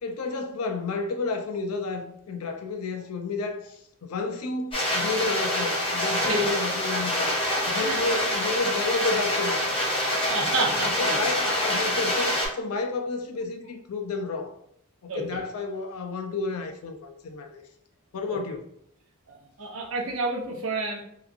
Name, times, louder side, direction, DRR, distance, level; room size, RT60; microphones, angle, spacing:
voice 1, 0.0-7.4 7.7-9.8 10.7-14.5 15.0-17.6 18.1-18.7, left 3 dB, 80° left, 0.4 m, -31 dB
sound 1, 4.7-12.5, left 1 dB, 25° left, 0.8 m, -26 dB
voice 2, 10.3-11.2 15.1-15.4 18.3-18.4 19.3-21.0, right 3 dB, 70° right, 0.7 m, -30 dB
2.9 x 2.4 x 2.4 m
head